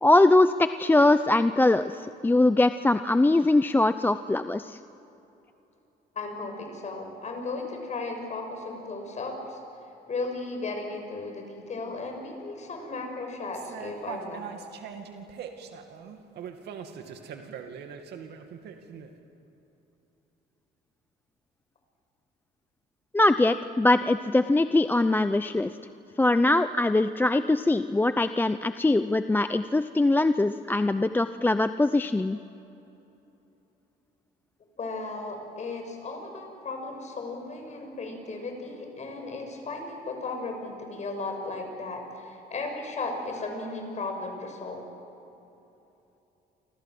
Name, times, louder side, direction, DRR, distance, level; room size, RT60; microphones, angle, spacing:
voice 1, 0.0-4.8 23.1-25.7 26.2-32.4, left 2 dB, 10° left, 11 dB, 0.6 m, -22 dB
voice 2, 6.1-14.4 34.8-44.9, left 3 dB, 40° left, 4 dB, 6.5 m, -35 dB
sound 1, 13.5-19.1, right 7 dB, 70° right, 2.6 m, -41 dB
30.0 x 25.5 x 7.8 m, 3.0 s
cardioid pair, 115°, 18 cm